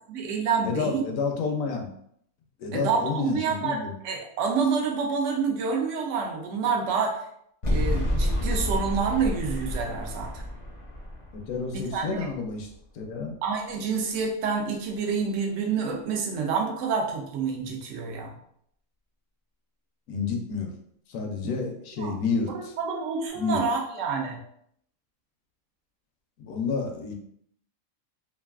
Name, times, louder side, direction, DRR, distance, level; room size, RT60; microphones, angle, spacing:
voice 1, 0.1-1.0 2.7-7.2 7.7-10.4 11.7-12.3 13.4-18.3 22.0-22.1 22.5-24.4, right 5 dB, 65° right, 1 dB, 0.9 m, -28 dB
voice 2, 0.6-1.9 2.6-3.9 11.4-12.7 12.9-13.4 20.1-20.7 21.1-22.7 23.4-23.6 26.4-27.1, left 5 dB, 75° left, 3 dB, 1.0 m, -29 dB
sound 1, 7.6-12.8, left 1 dB, 40° left, 0.5 m, -29 dB
3.1 x 2.4 x 2.3 m, 0.69 s
omnidirectional pair, 1.5 m